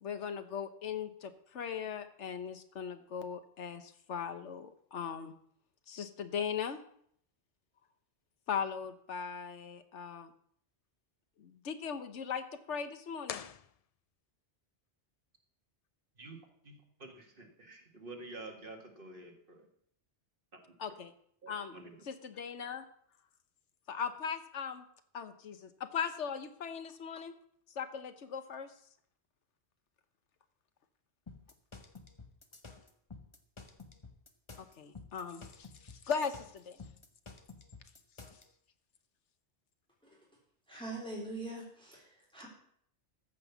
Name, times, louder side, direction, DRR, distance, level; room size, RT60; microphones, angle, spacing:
voice 1, 0.0-5.3 5.9-6.8 8.5-10.3 11.4-13.4 20.8-21.1 21.5-21.7 22.1-22.8 23.9-24.8 25.1-27.3 27.7-28.7 34.6-36.9, left 7 dB, 85° left, 10 dB, 1.3 m, -39 dB
sound 1, 13.2-14.4, left 8 dB, 55° left, 0.4 m, -45 dB
voice 2, 16.2-19.7 20.5-20.6 21.4-21.9, right 2 dB, 50° right, 3 dB, 2.0 m, -49 dB
sound 2, 31.3-38.5, left 4 dB, 25° left, 1.1 m, -51 dB
voice 3, 40.7-42.5, right 2 dB, 5° left, -5 dB, 3.7 m, -43 dB
14.0 x 5.5 x 7.1 m, 0.65 s
omnidirectional pair, 1.2 m